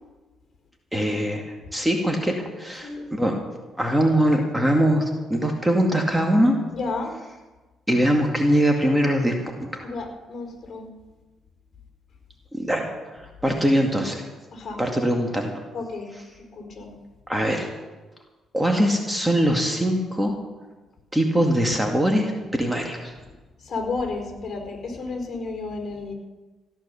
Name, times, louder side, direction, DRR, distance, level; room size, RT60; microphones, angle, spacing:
voice 1, 0.9-3.4 3.8-6.6 7.9-9.3 9.6-9.9 12.5-14.2 14.8-15.6 17.3-17.7 18.5-20.3 21.1-23.1, equal, 10° right, 2 dB, 2.1 m, -22 dB
voice 2, 6.7-7.1 9.8-10.9 14.5-14.8 15.7-16.1 16.5-16.9 23.6-26.1, left 3 dB, 45° left, 4 dB, 4.7 m, -32 dB
15.5 x 11.0 x 7.0 m, 1.2 s
cardioid pair, 90°, 0 cm